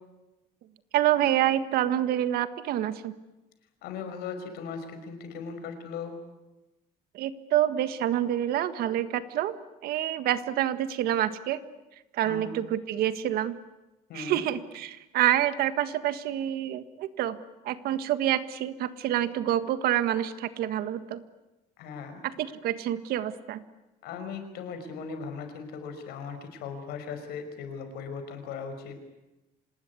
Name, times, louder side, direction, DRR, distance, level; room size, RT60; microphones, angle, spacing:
voice 1, 0.9-3.1 7.1-9.5 9.8-11.6 12.1-13.6 14.1-17.4 17.6-21.2 22.2-23.6, right 12 dB, 70° right, 12 dB, 1.6 m, -27 dB
voice 2, 3.8-6.2 12.2-12.5 14.1-14.4 21.8-22.2 24.0-29.0, left 5 dB, 80° left, 8 dB, 5.5 m, -38 dB
26.0 x 20.0 x 9.7 m, 1.0 s
cardioid pair, 160°, 16 cm